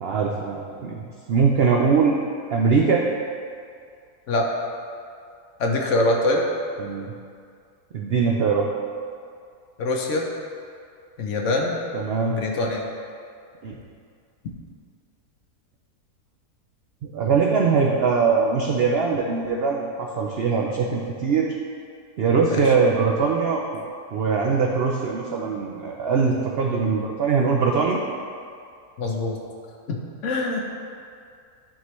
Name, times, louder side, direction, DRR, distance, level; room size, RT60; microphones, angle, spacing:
voice 1, 0.0-2.2 2.5-3.1 6.8-7.1 7.9-8.7 11.9-12.3 13.6-13.7 17.0-21.6 22.2-23.8 24.1-28.0, right 5 dB, 75° right, 0 dB, 0.5 m, -22 dB
voice 2, 5.6-6.4 9.8-10.3 11.2-11.8 12.3-12.9 22.5-22.6 29.0-29.4 29.9-30.6, left 2 dB, 60° left, 0 dB, 0.9 m, -24 dB
11.0 x 3.8 x 3.1 m, 2.3 s
omnidirectional pair, 1.6 m